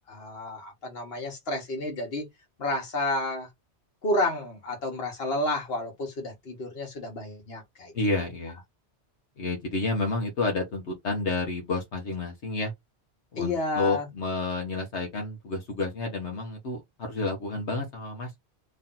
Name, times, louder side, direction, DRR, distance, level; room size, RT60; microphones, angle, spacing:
voice 1, 0.1-2.3 2.6-3.5 4.0-7.9 13.4-14.1, left 2 dB, 65° left, 1.7 m, -30 dB
voice 2, 7.9-8.6 9.4-12.7 13.3-18.4, left 3 dB, 85° left, 1.3 m, -30 dB
3.2 x 2.8 x 3.8 m
omnidirectional pair, 1.1 m